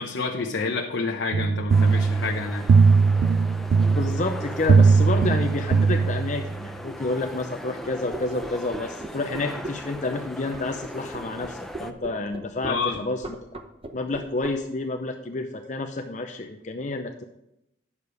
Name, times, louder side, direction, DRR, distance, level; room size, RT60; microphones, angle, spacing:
voice 1, 0.0-2.6 12.7-13.0, left 4 dB, 80° left, 1 dB, 0.9 m, -28 dB
sound 1, 1.3-6.6, right 4 dB, 65° right, 0.3 m, -20 dB
sound 2, 1.7-11.9, equal, ahead, 0.5 m, -39 dB
voice 2, 3.9-13.4 13.9-17.2, left 2 dB, 40° left, 5 dB, 0.7 m, -29 dB
sound 3, 7.8-14.5, right 2 dB, 30° right, 0.8 m, -37 dB
9.9 x 7.0 x 4.9 m, 0.83 s
head